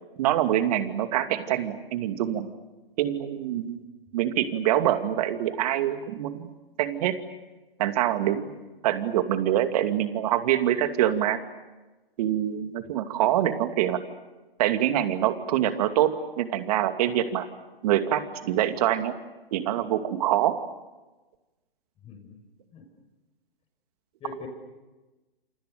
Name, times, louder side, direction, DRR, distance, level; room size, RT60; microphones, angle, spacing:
voice 1, 0.2-2.5 3.0-3.8 4.1-6.5 6.8-7.2 7.8-8.5 8.8-11.4 12.2-14.0 14.6-17.5 17.8-19.1 19.5-20.6, right 11 dB, 40° right, 8 dB, 2.5 m, -25 dB
voice 2, 22.0-22.3 22.7-22.9 24.2-24.5, left 4 dB, 20° left, 4 dB, 6.5 m, -41 dB
29.0 x 28.0 x 6.9 m, 1.1 s
figure-of-eight pair, 130°, 30 cm